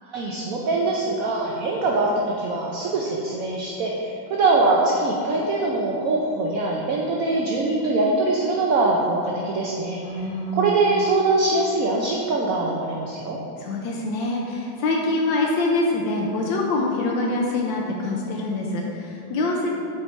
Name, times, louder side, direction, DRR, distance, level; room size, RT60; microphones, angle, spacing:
voice 1, 0.0-13.4, right 2 dB, 65° right, -2 dB, 0.9 m, -23 dB
voice 2, 10.0-10.7 13.6-19.7, left 2 dB, 85° left, -1 dB, 1.4 m, -25 dB
8.1 x 4.4 x 4.4 m, 2.7 s
omnidirectional pair, 2.0 m